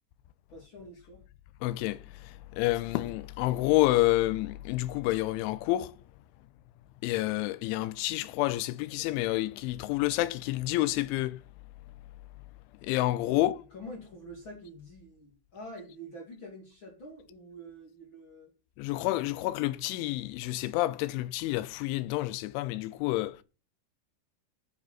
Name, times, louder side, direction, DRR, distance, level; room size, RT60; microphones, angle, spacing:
voice 1, 0.5-1.2 13.3-18.5, equal, 35° left, 2.3 m, -46 dB
voice 2, 1.6-6.0 7.0-11.4 12.8-13.6 18.8-23.4, left 17 dB, 80° left, 3.1 m, -29 dB
9.4 x 7.8 x 6.0 m
omnidirectional pair, 5.6 m